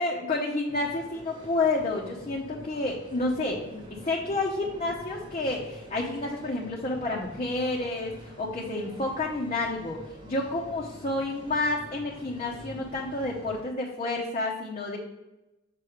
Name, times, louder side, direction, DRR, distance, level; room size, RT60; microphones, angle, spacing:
voice 1, 0.0-15.0, left 2 dB, 35° left, -3 dB, 0.7 m, -30 dB
sound 1, 0.7-13.6, equal, 25° right, 1.2 m, -47 dB
6.8 x 3.1 x 4.9 m, 0.99 s
head